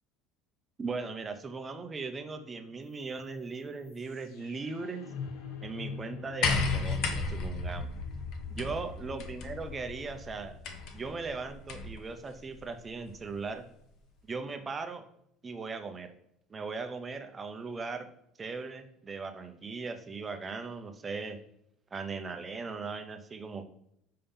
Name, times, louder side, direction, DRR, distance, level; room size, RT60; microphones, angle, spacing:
voice 1, 0.8-5.0 5.6-7.9 8.6-10.6 10.9-13.6 14.3-15.0 15.4-16.1 16.5-18.1 18.4-21.4 21.9-23.6, right 4 dB, 20° right, 7 dB, 0.7 m, -38 dB
sound 1, 2.8-12.9, left 5 dB, 85° left, 1.0 m, -47 dB
sound 2, 6.4-12.0 13.1-13.2, left 4 dB, 60° left, 0.9 m, -34 dB
5.6 x 3.5 x 5.6 m, 0.74 s
cardioid pair, 145°, 0 cm